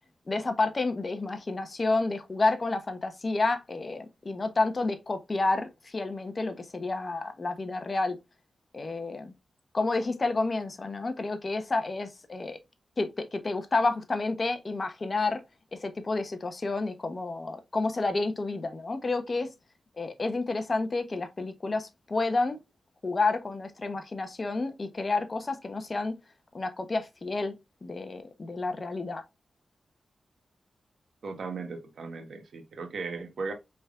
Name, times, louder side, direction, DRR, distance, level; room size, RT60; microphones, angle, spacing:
voice 1, 0.3-8.2 8.7-9.3 9.7-12.6 13.0-15.4 15.7-19.5 20.0-22.6 23.0-26.1 26.5-27.6 27.8-29.2, left 3 dB, 45° left, 0.9 m, -30 dB
voice 2, 31.2-33.5, right 4 dB, 70° right, 1.2 m, -37 dB
5.1 x 3.6 x 2.4 m
cardioid pair, 45°, 0 cm